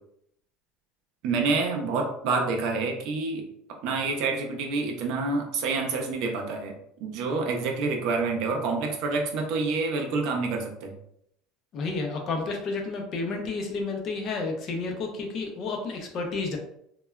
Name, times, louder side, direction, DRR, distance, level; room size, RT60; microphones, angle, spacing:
voice 1, 1.2-6.7 7.0-10.9, right 4 dB, 55° right, 2 dB, 0.5 m, -28 dB
voice 2, 11.7-16.6, left 3 dB, 40° left, 3 dB, 0.5 m, -31 dB
3.1 x 2.2 x 2.2 m, 0.73 s
cardioid pair, 150°, 0 cm